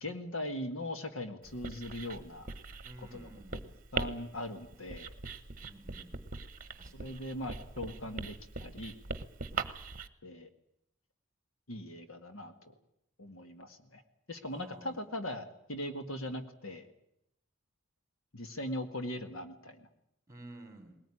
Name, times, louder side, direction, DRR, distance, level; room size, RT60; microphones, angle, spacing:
voice 1, 0.0-2.5 3.1-3.3 3.9-5.1 6.9-8.9 10.2-10.5 11.7-12.7 13.2-14.0 14.3-16.9 18.3-19.9, left 1 dB, 65° left, 7 dB, 1.9 m, -40 dB
Writing, 1.4-10.1, right 4 dB, 40° right, 1.2 m, -41 dB
voice 2, 2.8-3.7 5.6-6.1 6.8-7.2 14.5-15.1 20.3-21.0, right 1 dB, 15° right, 7 dB, 3.9 m, -52 dB
20.5 x 18.5 x 9.9 m, 0.79 s
head